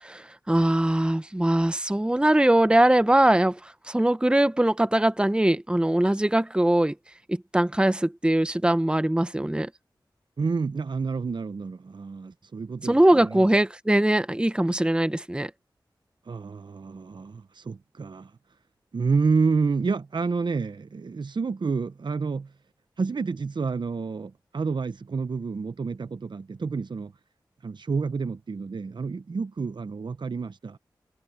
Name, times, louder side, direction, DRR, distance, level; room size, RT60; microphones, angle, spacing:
voice 1, 0.0-6.9 7.3-9.7 12.8-15.5, right 1 dB, 10° right, 0.9 m, -22 dB
voice 2, 10.4-13.5 16.3-18.3 18.9-22.5 23.0-27.1 27.6-30.8, right 4 dB, 65° right, 0.8 m, -29 dB
cardioid pair, 45°, 8 cm